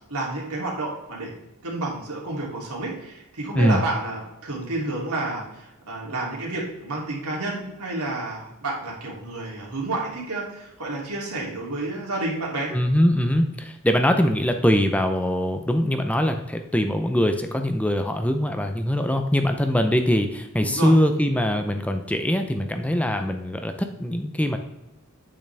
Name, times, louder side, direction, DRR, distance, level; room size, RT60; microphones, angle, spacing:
voice 1, 0.1-1.3 1.6-12.7 20.6-21.0, right 2 dB, 85° right, -3 dB, 3.0 m, -30 dB
voice 2, 12.7-24.6, equal, 5° left, 6 dB, 0.6 m, -22 dB
9.1 x 8.6 x 3.5 m, 0.90 s
head